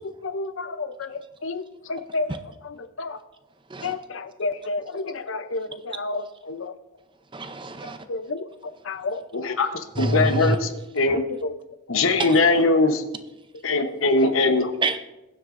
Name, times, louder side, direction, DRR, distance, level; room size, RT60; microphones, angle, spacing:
voice 1, 0.0-2.4 2.6-3.2 3.8-6.7 8.1-9.6 11.1-11.5 13.8-13.9 14.4-14.7, left 3 dB, 70° left, 11 dB, 0.7 m, -31 dB
voice 2, 7.3-8.0 10.0-10.6 11.1-11.2 12.2-12.3 14.8-15.0, right 2 dB, 25° right, 9 dB, 0.6 m, -26 dB
voice 3, 9.3-11.2 11.9-13.0 13.6-14.7, left 3 dB, 90° left, 7 dB, 1.1 m, -21 dB
21.5 x 7.8 x 2.6 m, 0.99 s
head